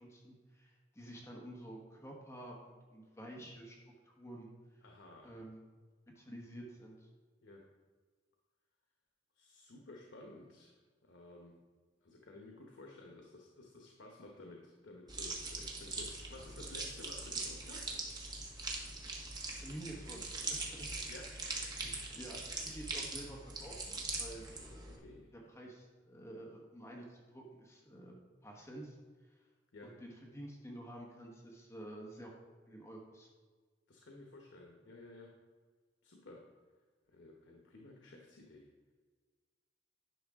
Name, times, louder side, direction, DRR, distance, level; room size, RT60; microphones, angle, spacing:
voice 1, 0.0-3.8 4.0-4.5 5.2-5.6 6.1-7.1 19.6-20.9 21.4-24.5 25.5-28.1 28.4-29.0 29.3-29.4 29.8-32.3 32.7-33.3, right 1 dB, 15° left, -1 dB, 1.2 m, -50 dB
voice 2, 4.8-5.3 7.4-7.6 9.3-10.7 11.0-11.5 12.0-17.9 21.1-21.3 22.0-22.1 24.9-25.3 29.7-29.9 33.9-35.3 36.0-36.4 37.1-38.6, left 2 dB, 90° left, 0 dB, 1.1 m, -54 dB
sound 1, 15.1-25.0, right 3 dB, 25° right, 1.3 m, -42 dB
10.5 x 6.4 x 3.6 m, 1.4 s
head